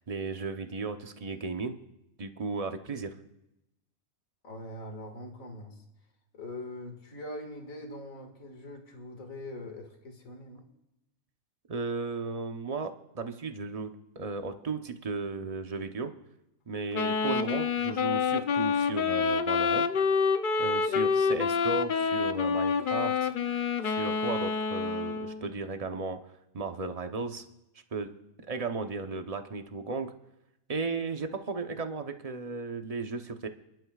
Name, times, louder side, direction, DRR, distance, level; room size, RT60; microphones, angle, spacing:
voice 1, 0.1-1.8 2.2-3.1 11.7-16.1 16.7-19.9 20.6-26.2 26.5-27.4 27.9-28.1 28.5-30.1 30.7-33.5, right 4 dB, 30° right, 6 dB, 0.8 m, -35 dB
voice 2, 4.4-5.8 6.3-10.6, left 1 dB, 75° left, 3 dB, 2.4 m, -42 dB
Wind instrument woodwind instrument, 16.9-25.4, left 5 dB, 50° left, 0.6 m, -27 dB
29.0 x 11.5 x 2.4 m, 0.88 s
omnidirectional pair, 1.4 m